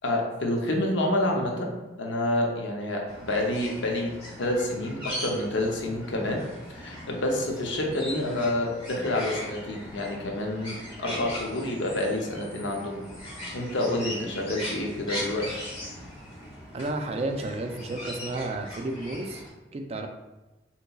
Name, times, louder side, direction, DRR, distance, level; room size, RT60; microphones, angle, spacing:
voice 1, 0.0-1.7 2.0-4.1 4.4-6.4 6.7-13.0 13.5-15.4, left 1 dB, 85° left, 0 dB, 0.6 m, -28 dB
sound 1, 3.1-19.5, equal, 25° left, 1.0 m, -39 dB
voice 2, 16.7-19.4 19.7-20.1, right 2 dB, 35° right, 5 dB, 0.3 m, -32 dB
3.9 x 2.8 x 2.3 m, 1.1 s
head